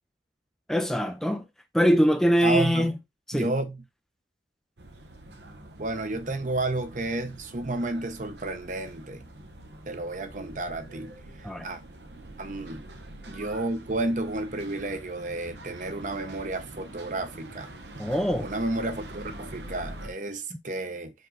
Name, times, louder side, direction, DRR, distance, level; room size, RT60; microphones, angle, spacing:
voice 1, 0.7-1.4 1.7-2.9 3.3-3.5 11.4-11.7 18.0-18.5, equal, ahead, 0.5 m, -23 dB
voice 2, 2.4-2.9 3.3-3.8 5.8-9.2 9.9-11.1 11.4-11.8 12.4-12.9 13.3-17.7 18.4-21.1, right 2 dB, 45° right, 1.0 m, -31 dB
sound 1, 4.8-20.1, right 1 dB, 75° right, 1.1 m, -45 dB
5.4 x 5.3 x 3.9 m
head